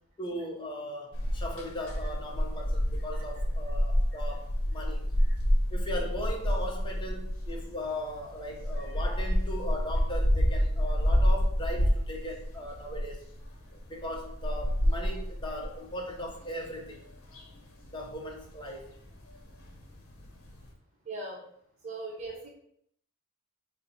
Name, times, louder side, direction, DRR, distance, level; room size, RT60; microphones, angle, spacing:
voice 1, 0.2-5.1 5.7-13.2 13.7-17.0 17.9-18.9, left 1 dB, 20° left, -1 dB, 0.7 m, -38 dB
sound 1, 1.1-20.7, equal, 75° left, 0.8 m, -29 dB
voice 2, 21.0-21.4 21.8-22.5, right 2 dB, 35° right, -3 dB, 0.8 m, -40 dB
4.2 x 2.1 x 4.0 m, 0.69 s
head